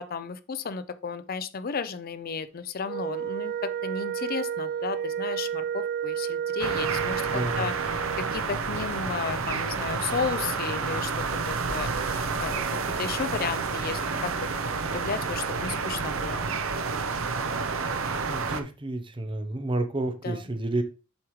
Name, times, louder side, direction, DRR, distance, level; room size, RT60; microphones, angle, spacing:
voice 1, 0.0-7.7 8.2-12.7 13.0-14.6 14.9-16.5 20.2-20.4, left 5 dB, 45° left, 13 dB, 0.5 m, -34 dB
Wind instrument woodwind instrument, 2.8-8.5, right 8 dB, 45° right, 0.4 m, -31 dB
sound 1, 6.6-18.6, right 4 dB, 70° right, 0.7 m, -30 dB
voice 2, 7.3-7.7 18.3-20.8, right 2 dB, 25° right, 8 dB, 0.7 m, -30 dB
7.2 x 4.8 x 3.1 m, 0.33 s
head